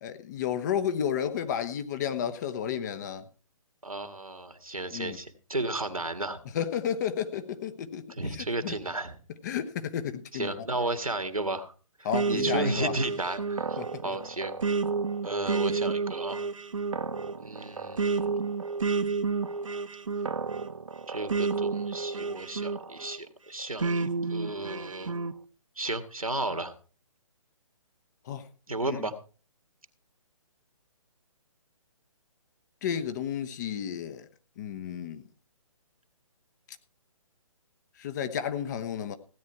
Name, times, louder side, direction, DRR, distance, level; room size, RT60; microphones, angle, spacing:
voice 1, 0.0-3.2 4.9-5.2 6.5-8.8 9.4-10.5 12.0-12.9 13.8-14.2 28.3-28.5 28.8-29.0 32.8-34.3 34.6-35.2 38.0-39.2, left 8 dB, 30° left, 1.1 m, -32 dB
voice 2, 3.8-6.4 8.1-9.2 10.3-11.7 12.0-14.5 15.2-16.4 17.4-18.4 21.1-25.1 25.8-26.7 28.7-29.1, right 2 dB, 85° right, 1.9 m, -33 dB
sound 1, 12.1-23.2 23.8-25.3, right 4 dB, 65° right, 1.1 m, -30 dB
16.0 x 9.5 x 4.7 m
figure-of-eight pair, 135°, 18 cm